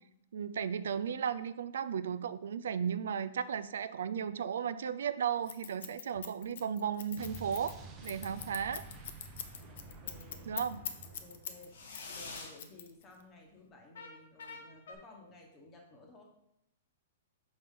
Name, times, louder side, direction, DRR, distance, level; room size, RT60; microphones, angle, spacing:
voice 1, 0.3-7.7 8.0-8.8 10.5-10.8, right 7 dB, 75° right, 13 dB, 0.3 m, -35 dB
Scissors, 5.5-11.6 11.9-13.2, left 9 dB, 50° left, 0.6 m, -42 dB
Explosion, 7.2-11.9, right 3 dB, 15° right, 0.7 m, -50 dB
sound 1, 9.4-10.0 11.7-12.6 13.9-14.9, left 4 dB, 80° left, 1.5 m, -47 dB
voice 2, 9.8-10.6 11.0-16.2, left 2 dB, 15° left, 1 dB, 1.1 m, -56 dB
5.9 x 5.5 x 3.7 m, 0.80 s
hypercardioid pair, 175°, 0 cm